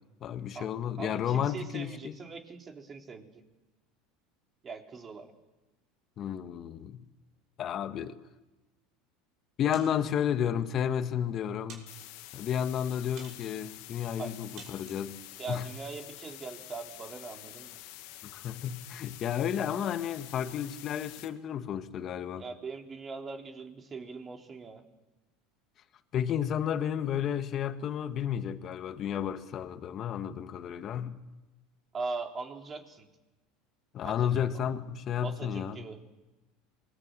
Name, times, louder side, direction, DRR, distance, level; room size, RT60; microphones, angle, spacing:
voice 1, 0.2-2.2 6.2-7.0 7.6-8.1 9.6-11.8 12.3-15.2 15.5-15.6 18.3-22.4 26.1-31.2 33.9-35.8, left 9 dB, 45° left, 1.9 m, -32 dB
voice 2, 1.0-3.4 4.6-5.3 14.2-14.3 15.4-17.8 22.4-24.8 31.9-33.1 34.0-34.4 35.2-36.0, right 4 dB, 30° right, 3.7 m, -41 dB
sound 1, 9.7-10.3 11.0-11.1 11.7-12.3 13.2-13.7 14.6-15.1, right 5 dB, 55° right, 6.6 m, -51 dB
sound 2, 11.9-21.3, left 16 dB, 70° left, 2.0 m, -48 dB
27.5 x 21.0 x 7.8 m
supercardioid pair, 95°, 0 cm